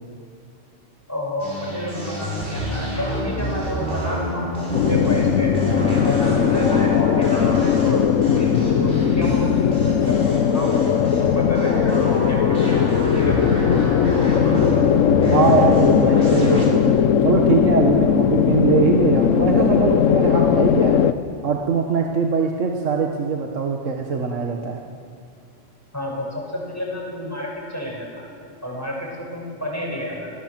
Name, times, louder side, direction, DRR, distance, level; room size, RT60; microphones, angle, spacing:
voice 1, 1.1-5.5 6.0-11.1 11.3-13.5 25.9-28.2 28.6-30.4, equal, 10° left, -2 dB, 6.4 m, -30 dB
sound 1, 1.4-16.7, left 1 dB, 45° right, 6.7 m, -28 dB
sound 2, 4.7-21.1, left 8 dB, 85° left, 1.2 m, -18 dB
voice 2, 15.2-21.0 21.4-24.8, right 4 dB, 75° right, 1 dB, 1.8 m, -21 dB
30.0 x 19.5 x 7.5 m, 2.4 s
omnidirectional pair, 1.3 m